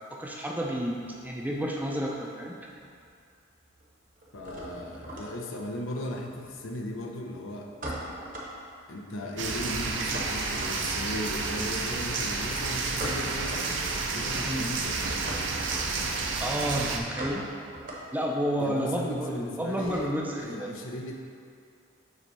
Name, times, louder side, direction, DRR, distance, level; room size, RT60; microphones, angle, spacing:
voice 1, 0.1-2.5 14.5-14.7 16.4-17.5 18.1-20.7, equal, 10° right, -2 dB, 0.5 m, -30 dB
sound 1, 1.1-2.2 2.4-3.1 3.4-20.4, right 1 dB, 45° right, 1.0 m, -42 dB
voice 2, 4.3-7.7 8.9-13.8 14.1-15.0 18.6-20.1 20.4-21.2, left 1 dB, 75° left, 1 dB, 0.7 m, -37 dB
sound 2, 9.4-17.0, right 4 dB, 60° right, 0.6 m, -30 dB
7.4 x 3.2 x 5.4 m, 2.4 s
head